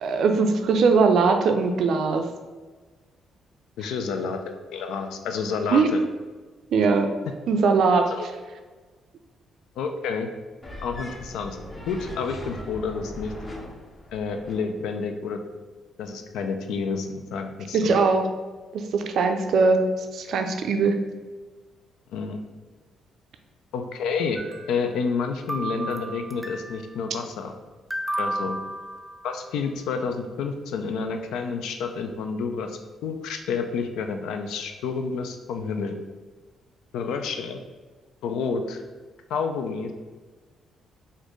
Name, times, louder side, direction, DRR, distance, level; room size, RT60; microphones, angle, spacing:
voice 1, 0.0-2.2 5.7-5.9 6.7-7.1 7.5-8.1 17.7-18.2 18.7-19.8 20.1-21.0, right 4 dB, 70° right, 6 dB, 0.4 m, -20 dB
voice 2, 3.8-6.0 8.1-8.3 9.8-10.3 10.8-11.6 11.9-13.3 14.1-15.4 16.0-17.9 22.1-22.4 23.7-24.4 24.7-27.5 28.2-28.6 29.2-35.9 36.9-37.6 38.2-38.8 39.3-39.9, left 5 dB, 85° left, 6 dB, 0.4 m, -29 dB
sound 1, 10.6-14.6, left 1 dB, 30° left, 0.9 m, -40 dB
sound 2, 24.4-25.2 25.5-26.9 27.9-29.5, right 1 dB, ahead, 0.4 m, -33 dB
4.1 x 2.6 x 3.0 m, 1.3 s
cardioid pair, 90°, 0 cm